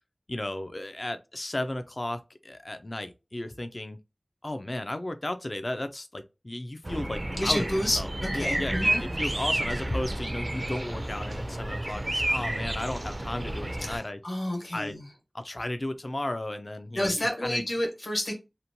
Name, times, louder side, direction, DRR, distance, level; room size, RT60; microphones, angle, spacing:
voice 1, 0.3-4.0 4.4-7.6 8.0-14.2 14.7-15.0 15.3-17.6, left 1 dB, 45° left, 0.3 m, -34 dB
sound 1, 6.8-14.0, right 1 dB, 45° right, 0.4 m, -31 dB
voice 2, 7.4-9.0 13.8-15.1 16.9-18.3, left 1 dB, 70° left, 1.1 m, -29 dB
2.8 x 2.1 x 2.6 m
wide cardioid pair, 55°, 0 cm